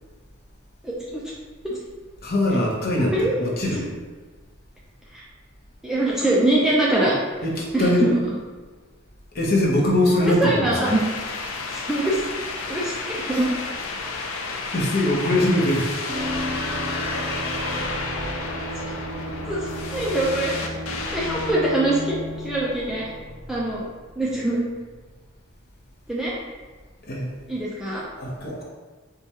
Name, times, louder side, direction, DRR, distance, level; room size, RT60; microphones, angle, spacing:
voice 1, 0.8-1.2 1.6-1.8 3.1-3.3 5.1-5.2 5.8-7.1 7.7-8.2 10.2-11.0 11.7-12.2 12.7-13.5 19.5-20.7 21.1-23.0 23.5-23.9 24.2-24.6 26.1-26.4 27.5-28.0, right 1 dB, ahead, -6 dB, 0.4 m, -23 dB
voice 2, 2.2-3.9 7.4-8.1 9.3-10.9 13.3-13.5 14.1-15.9 27.1-27.3 28.2-28.6, left 1 dB, 45° left, -4 dB, 0.8 m, -22 dB
sound 1, 10.8-21.5, left 3 dB, 75° left, 0.4 m, -31 dB
sound 2, 16.1-24.6 24.8-24.9, equal, 45° right, 0.7 m, -34 dB
4.6 x 2.3 x 2.8 m, 1.4 s
head